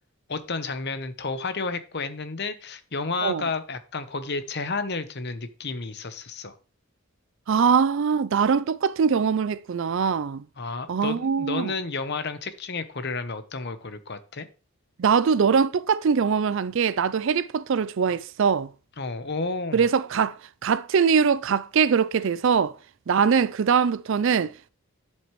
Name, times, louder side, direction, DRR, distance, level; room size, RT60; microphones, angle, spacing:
voice 1, 0.3-6.6 10.6-14.5 19.0-19.8, left 3 dB, 50° left, 0.9 m, -31 dB
voice 2, 7.5-10.4 10.9-11.7 15.0-18.7 19.7-20.4 20.6-22.8 23.1-24.7, right 6 dB, 55° right, 0.4 m, -22 dB
11.0 x 7.7 x 3.2 m
head